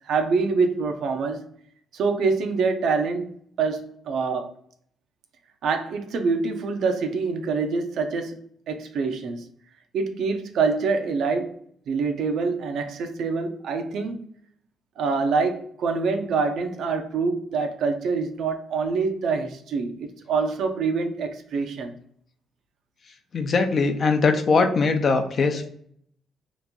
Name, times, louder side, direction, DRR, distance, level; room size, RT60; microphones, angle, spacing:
voice 1, 0.1-1.4 1.9-3.3 3.6-4.5 5.6-8.4 8.7-9.4 9.9-11.5 11.9-14.2 15.0-21.9, right 4 dB, 70° right, 0.5 m, -25 dB
voice 2, 23.3-25.7, left 4 dB, 50° left, 0.5 m, -21 dB
3.0 x 2.5 x 3.5 m
cardioid pair, 90°, 0 cm